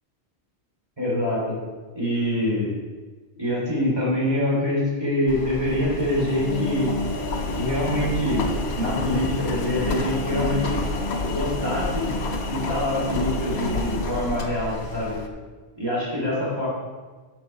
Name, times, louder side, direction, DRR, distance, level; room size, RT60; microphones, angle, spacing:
voice 1, 1.0-1.6 2.0-2.7 3.4-6.9 7.6-8.4 8.8-10.8 11.2-12.2 12.5-15.2 15.8-16.7, left 1 dB, 25° right, -6 dB, 3.5 m, -25 dB
Engine, 5.3-15.3, left 2 dB, 75° left, 1.3 m, -28 dB
10.5 x 6.2 x 4.6 m, 1.4 s
omnidirectional pair, 1.1 m